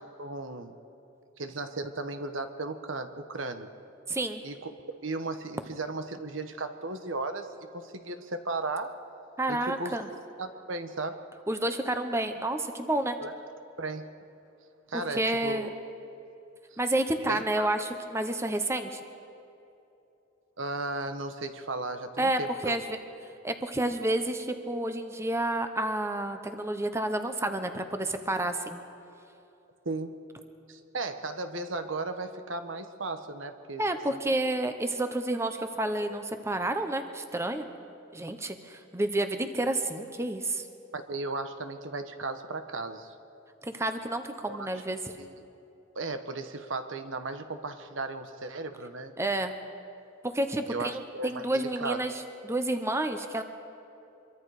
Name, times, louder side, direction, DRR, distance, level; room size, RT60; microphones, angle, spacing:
voice 1, 0.2-0.7 1.4-3.7 4.4-4.7 5.0-9.0 9.5-10.0 10.4-11.2 13.2-13.3 13.8-14.1 14.9-15.7 17.3-17.7 20.6-22.7 29.8-30.2 30.7-34.2 40.9-43.1 44.5-44.7 45.2-45.3 45.9-49.1 50.7-52.0, right 3 dB, 70° right, 8 dB, 1.3 m, -35 dB
voice 2, 4.1-4.4 9.4-10.1 11.5-13.2 14.9-15.7 16.8-19.0 22.2-22.8 23.4-28.8 33.8-37.6 38.1-40.6 43.6-45.0 49.2-49.5 50.2-53.4, right 1 dB, 15° right, 7 dB, 1.0 m, -30 dB
25.5 x 23.0 x 5.0 m, 2.8 s
head